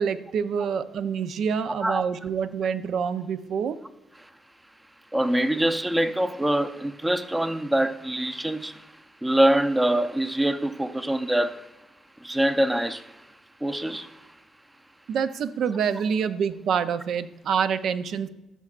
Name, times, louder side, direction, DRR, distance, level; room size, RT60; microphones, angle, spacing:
voice 1, 0.0-3.8 15.1-18.3, right 7 dB, 70° right, 0.5 m, -26 dB
voice 2, 5.1-8.9 9.2-11.7 12.2-13.3 13.6-14.3, right 1 dB, 10° right, 0.5 m, -24 dB
13.0 x 6.6 x 2.4 m
cardioid pair, 90°, 0 cm